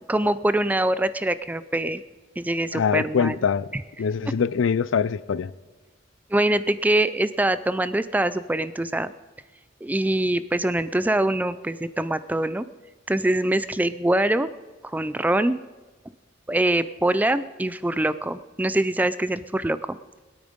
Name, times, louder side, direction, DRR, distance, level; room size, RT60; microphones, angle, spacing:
voice 1, 0.1-2.0 2.4-3.4 6.3-9.1 9.8-12.7 13.1-14.5 14.8-15.6 16.5-20.0, right 1 dB, 10° right, 0.3 m, -24 dB
voice 2, 2.7-3.7 4.0-5.5, left 6 dB, 85° left, 0.4 m, -23 dB
21.0 x 8.8 x 5.2 m
head